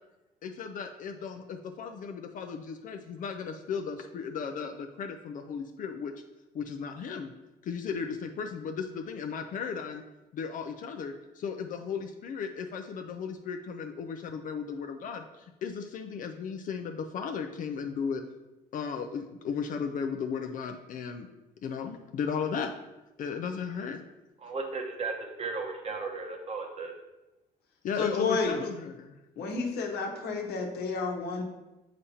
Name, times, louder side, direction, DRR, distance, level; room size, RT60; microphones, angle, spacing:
voice 1, 0.4-6.1 6.5-7.3 7.6-10.0 10.3-18.2 18.7-21.3 21.6-22.7 23.2-24.0 27.8-29.2, left 6 dB, 50° left, 5 dB, 0.5 m, -35 dB
voice 2, 24.4-26.9, right 4 dB, 40° right, 2 dB, 1.0 m, -35 dB
voice 3, 28.0-28.6 29.4-31.4, left 4 dB, 70° left, 2 dB, 1.1 m, -30 dB
7.0 x 5.1 x 2.8 m, 1.0 s
cardioid pair, 110°, 17 cm